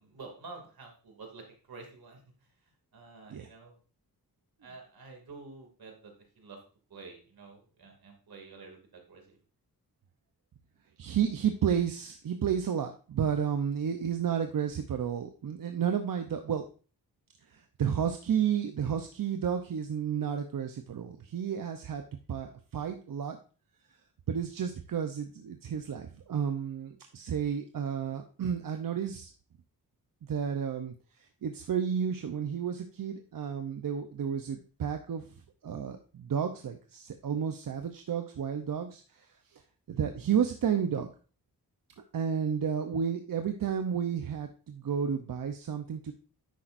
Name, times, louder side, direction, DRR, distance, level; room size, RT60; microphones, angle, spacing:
voice 1, 0.0-3.8 4.6-6.6 6.9-9.4, right 3 dB, 80° right, 2 dB, 2.7 m, -49 dB
voice 2, 11.0-16.6 17.5-22.0 22.3-23.4 24.3-29.3 30.2-35.3 35.6-39.6 39.9-41.1 42.1-46.1, right 8 dB, 65° right, 6 dB, 0.8 m, -32 dB
10.5 x 8.4 x 2.6 m, 0.38 s
wide cardioid pair, 95°, 36 cm